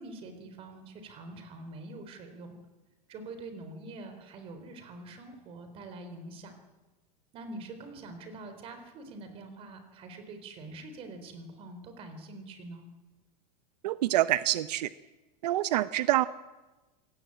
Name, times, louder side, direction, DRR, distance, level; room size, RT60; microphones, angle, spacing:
voice 1, 0.0-2.6 3.1-6.5 7.3-12.8, right 2 dB, 25° right, 8 dB, 3.9 m, -45 dB
voice 2, 13.8-14.9 15.4-16.3, right 15 dB, 80° right, 14 dB, 0.8 m, -26 dB
26.5 x 18.5 x 8.9 m, 1.2 s
supercardioid pair, 170°, 21 cm